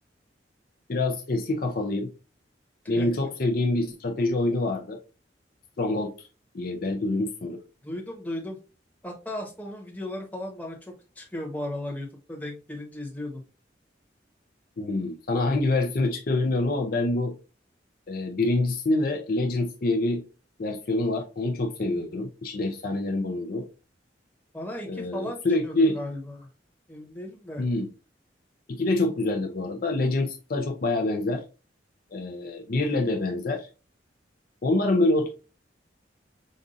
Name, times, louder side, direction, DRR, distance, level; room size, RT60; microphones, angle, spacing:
voice 1, 0.9-2.1 2.9-5.0 5.8-6.3 6.5-7.6 14.8-17.3 18.1-20.2 20.6-23.7 24.9-26.0 27.6-27.9 28.7-31.4 32.1-33.7 34.6-35.3, left 2 dB, 55° left, 0.5 m, -26 dB
voice 2, 7.8-8.6 9.0-13.4 24.5-26.5 26.9-27.6, left 1 dB, 10° left, 1.0 m, -36 dB
5.2 x 2.4 x 2.5 m
head